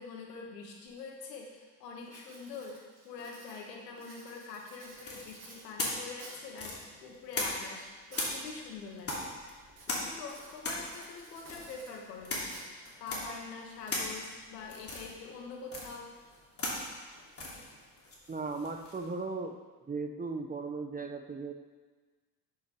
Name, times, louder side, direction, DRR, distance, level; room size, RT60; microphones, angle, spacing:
voice 1, 0.0-2.8 3.0-9.2 9.9-12.7 13.0-16.1, left 4 dB, 85° left, 0 dB, 1.7 m, -45 dB
Writing, 0.9-1.0 1.4-1.7 2.0-6.6 7.1-8.4 8.7-9.1 9.7-13.1, right 3 dB, 45° right, 2.6 m, -54 dB
sound 1, 5.0-7.8 8.1-19.1, left 2 dB, 30° left, 2.9 m, -39 dB
voice 2, 18.3-19.5 19.9-21.5, right 4 dB, 20° right, 5 dB, 0.7 m, -37 dB
9.9 x 6.0 x 4.6 m, 1.3 s
hypercardioid pair, 75°, 48 cm